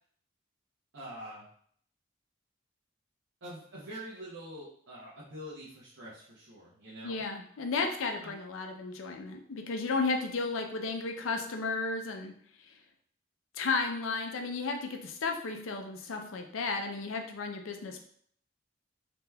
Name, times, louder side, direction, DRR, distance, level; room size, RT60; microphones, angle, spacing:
voice 1, 0.9-1.5 3.4-7.2 8.2-8.3, right 1 dB, 65° right, -8 dB, 0.8 m, -45 dB
voice 2, 7.0-12.3 12.6-12.7 13.5-18.1, left 4 dB, 90° left, 4 dB, 0.5 m, -33 dB
3.3 x 2.9 x 2.2 m, 0.62 s
head